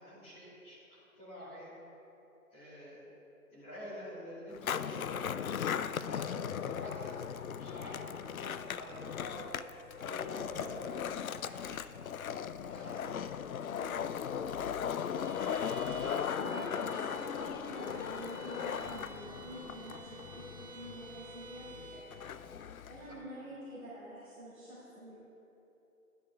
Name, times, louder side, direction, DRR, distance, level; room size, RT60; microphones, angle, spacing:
voice 1, 0.0-1.8 2.5-3.1 3.5-5.4 6.0-7.2 7.5-9.5 10.0-12.0 12.6-13.2 16.3-16.7 23.0-23.2, equal, 15° left, -9 dB, 2.3 m, -48 dB
Skateboard, 4.5-23.2, left 8 dB, 70° left, 0.5 m, -38 dB
voice 2, 13.7-14.1 16.3-22.3 22.8-25.2, equal, 5° right, -17 dB, 1.6 m, -47 dB
Bowed string instrument, 15.1-22.2, right 4 dB, 55° right, 2.4 m, -51 dB
12.0 x 10.0 x 3.4 m, 3.0 s
figure-of-eight pair, 150°, 44 cm